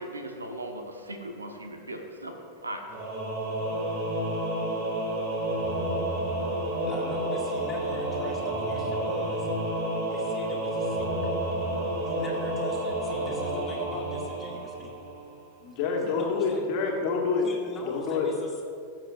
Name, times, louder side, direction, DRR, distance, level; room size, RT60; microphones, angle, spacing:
voice 1, 0.0-2.4 2.6-2.8, right 1 dB, 80° right, 4 dB, 1.1 m, -38 dB
Singing / Musical instrument, 2.9-15.3, right 1 dB, 45° right, 2.3 m, -30 dB
voice 2, 6.8-9.5 10.1-11.3 12.0-15.1 16.0-16.6 17.4-18.6, left 2 dB, 20° left, -1 dB, 2.0 m, -42 dB
voice 3, 15.6-17.5 17.8-18.3, left 5 dB, 45° left, -1 dB, 1.9 m, -27 dB
18.0 x 7.5 x 2.6 m, 2.3 s
figure-of-eight pair, 90°, 0 cm